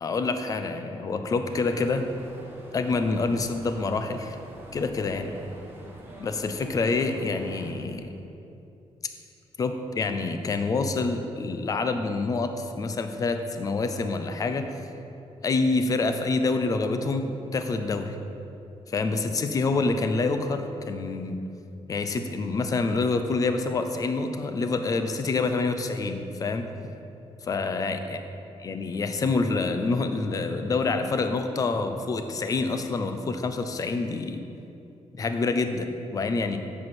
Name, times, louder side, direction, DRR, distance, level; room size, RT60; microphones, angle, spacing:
voice 1, 0.0-2.1 2.7-4.4 4.7-5.4 6.2-8.2 9.6-14.7 15.4-18.2 18.9-21.4 21.9-26.7 27.4-28.2 28.6-34.4 35.1-36.6, left 3 dB, 30° left, 7 dB, 0.5 m, -27 dB
sound 1, 1.4-7.7, right 1 dB, 20° right, 1.3 m, -45 dB
7.8 x 5.7 x 6.0 m, 2.7 s
wide cardioid pair, 165°, 11 cm